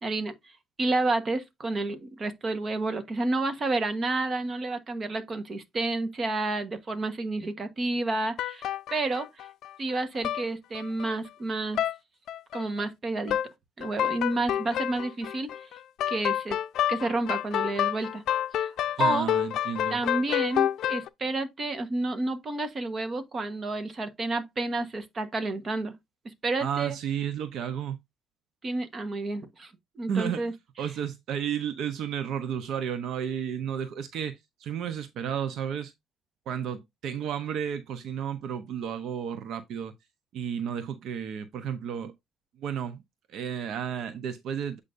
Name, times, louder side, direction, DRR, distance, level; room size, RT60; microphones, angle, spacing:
voice 1, 0.0-9.5 9.8-11.8 12.5-13.4 13.8-15.7 16.1-16.6 16.9-18.2 18.5-19.3 19.9-25.9 26.2-26.9 28.6-30.5 30.8-30.9, right 2 dB, 30° right, 1.2 m, -30 dB
sound 1, 8.4-9.9 10.2-10.4 10.7-11.3 11.7-12.0 12.3-12.8 13.3-13.5 13.8-21.1, left 11 dB, 60° left, 0.5 m, -29 dB
voice 2, 19.0-20.0 26.6-28.0 30.1-30.4 30.8-35.9 36.5-39.9 40.3-42.1 42.6-43.0 43.3-44.8, right 8 dB, 60° right, 0.7 m, -32 dB
8.3 x 5.0 x 2.6 m
cardioid pair, 140°, 0 cm